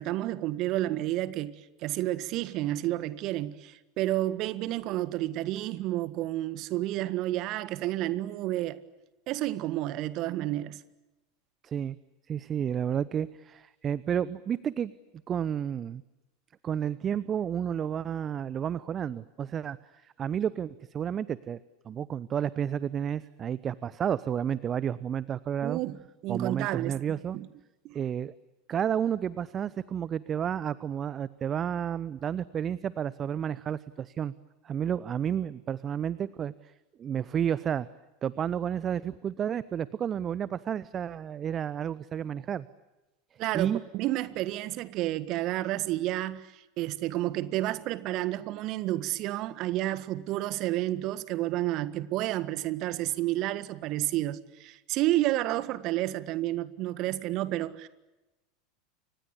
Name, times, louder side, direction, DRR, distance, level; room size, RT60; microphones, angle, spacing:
voice 1, 0.0-8.8 9.3-10.8 25.6-26.0 26.2-27.0 27.3-27.5 27.8-28.0 43.4-57.9, right 15 dB, 45° right, 1.6 m, -30 dB
voice 2, 11.6-12.0 12.3-14.9 15.3-16.0 16.6-19.8 20.0-21.6 21.8-25.8 26.3-27.4 27.9-28.3 28.7-34.3 34.6-36.7 37.0-37.9 38.2-42.7 43.5-43.8, right 8 dB, 30° right, 0.8 m, -31 dB
30.0 x 25.5 x 7.1 m
figure-of-eight pair, 80°, 0 cm